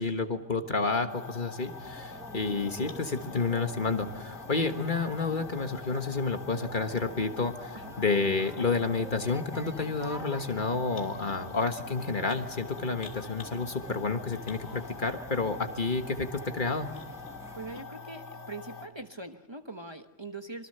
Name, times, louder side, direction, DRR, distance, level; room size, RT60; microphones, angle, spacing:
voice 1, 0.0-16.9, left 4 dB, 45° left, 6 dB, 1.6 m, -30 dB
sound 1, 1.1-18.9, left 4 dB, 85° left, 2.9 m, -44 dB
sound 2, 1.6-17.8, right 1 dB, 5° right, 1.5 m, -48 dB
voice 2, 17.6-20.7, right 2 dB, 25° right, 6 dB, 1.2 m, -42 dB
26.0 x 23.5 x 6.7 m, 0.97 s
omnidirectional pair, 1.2 m